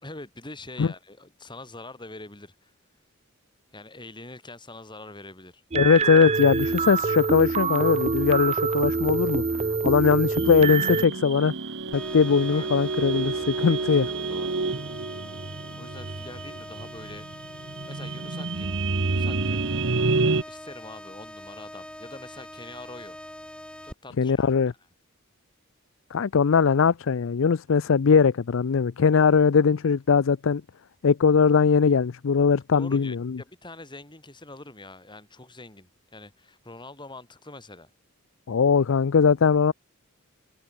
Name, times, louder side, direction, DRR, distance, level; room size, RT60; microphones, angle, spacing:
voice 1, 0.0-2.7 3.7-5.6 12.5-14.0 14.3-14.5 15.8-17.3 17.7-18.7 19.0-19.6 20.5-23.2 23.8-24.5 32.7-37.9, left 2 dB, 20° left, 4.2 m, -44 dB
voice 2, 5.7-9.4 9.8-11.5 11.9-14.1 24.2-24.7 26.1-30.6 31.0-33.4 38.5-39.7, left 5 dB, 60° left, 0.5 m, -20 dB
sound 1, 5.7-11.0, right 4 dB, 30° right, 0.5 m, -25 dB
sound 2, 10.4-20.4, right 3 dB, 60° right, 1.2 m, -29 dB
sound 3, 11.9-23.9, left 1 dB, 5° left, 3.7 m, -43 dB
head